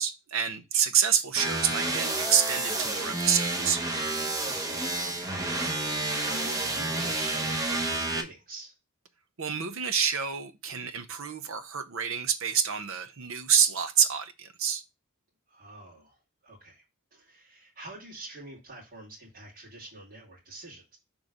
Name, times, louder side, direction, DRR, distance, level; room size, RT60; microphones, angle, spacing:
voice 1, 0.0-3.8 9.4-14.8, right 7 dB, 65° right, 0.7 m, -27 dB
sound 1, 1.4-8.2, right 2 dB, 15° right, 0.8 m, -30 dB
voice 2, 4.2-8.7 15.5-16.2 16.4-16.8 17.1-21.0, right 2 dB, 40° right, 2.3 m, -46 dB
6.3 x 3.1 x 5.1 m
head